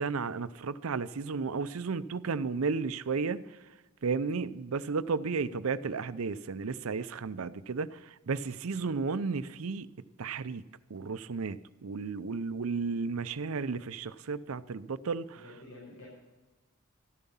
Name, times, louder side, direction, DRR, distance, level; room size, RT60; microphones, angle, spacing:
voice 1, 0.0-3.4 4.0-9.9 10.2-10.6 10.9-15.3, right 4 dB, 80° right, 14 dB, 0.6 m, -33 dB
voice 2, 15.3-16.1, left 2 dB, 90° left, -5 dB, 5.3 m, -50 dB
13.5 x 11.0 x 5.5 m, 1.2 s
head